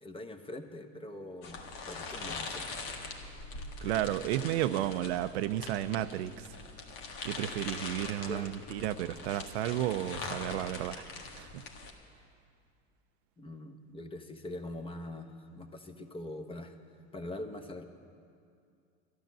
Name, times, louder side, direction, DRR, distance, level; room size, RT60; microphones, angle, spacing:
voice 1, 0.0-1.6 1.9-2.7 8.3-8.5 13.4-16.8 17.1-17.9, left 1 dB, 15° left, 7 dB, 1.0 m, -43 dB
sound 1, 1.4-11.9, left 3 dB, 75° left, 1.6 m, -42 dB
voice 2, 3.8-6.6 7.2-11.1 11.4-11.7, right 13 dB, 80° right, 13 dB, 0.5 m, -33 dB
12.5 x 11.0 x 7.3 m, 2.4 s
hypercardioid pair, 95°, 32 cm